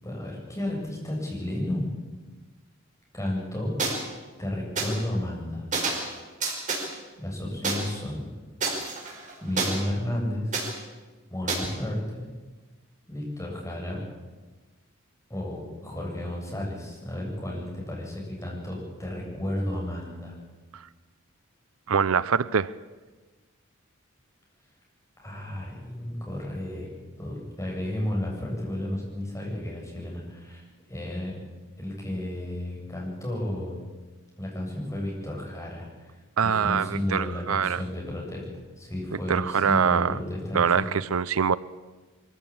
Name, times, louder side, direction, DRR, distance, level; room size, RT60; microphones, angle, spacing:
voice 1, 0.0-1.9 3.1-3.7 4.4-5.7 7.2-8.3 9.4-10.5 11.3-12.2 13.1-14.0 15.3-20.4 25.2-26.9 27.2-31.4 31.8-33.8 34.4-36.2 36.6-38.4 38.8-40.9, left 1 dB, 15° left, -3 dB, 7.6 m, -32 dB
sound 1, 3.8-3.9 4.8-4.9 5.7-6.1 6.4-6.8 7.6-7.7 8.6-9.7 10.5-10.7 11.5-11.6, right 4 dB, 40° right, 5.0 m, -28 dB
voice 2, 21.9-22.7 36.4-37.8 39.3-40.2 40.5-41.6, right 6 dB, 85° right, 17 dB, 0.6 m, -24 dB
23.5 x 15.0 x 8.7 m, 1.3 s
head